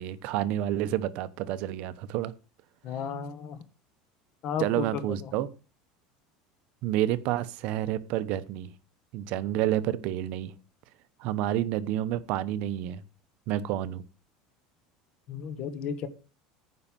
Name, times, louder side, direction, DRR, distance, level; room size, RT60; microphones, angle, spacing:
voice 1, 0.0-2.3 4.6-5.5 6.8-8.7 9.1-10.5 11.2-13.0 13.5-14.0, right 12 dB, 55° right, 0.8 m, -29 dB
voice 2, 2.8-3.6 4.4-5.3 15.3-16.1, left 7 dB, 40° left, 1.4 m, -34 dB
9.6 x 5.3 x 7.3 m
cardioid pair, 150°, 2 cm